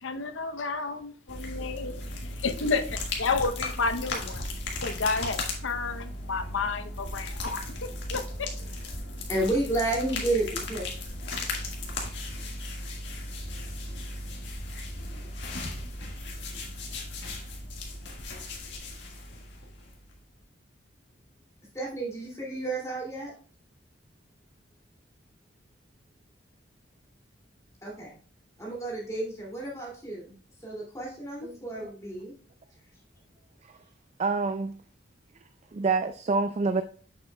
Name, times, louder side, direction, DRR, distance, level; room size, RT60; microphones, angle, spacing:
voice 1, 0.0-4.4 4.8-8.5, left 4 dB, 80° left, 0.7 m, -31 dB
sound 1, 1.3-20.2, left 2 dB, 65° left, 1.7 m, -36 dB
voice 2, 9.3-10.9 21.7-23.3 27.8-28.2 28.6-30.3 30.6-32.3, right 2 dB, 15° left, 2.4 m, -31 dB
voice 3, 31.4-31.9 33.6-33.8 34.2-34.7 35.7-36.8, right 4 dB, 35° right, 0.3 m, -28 dB
8.0 x 6.7 x 2.2 m
head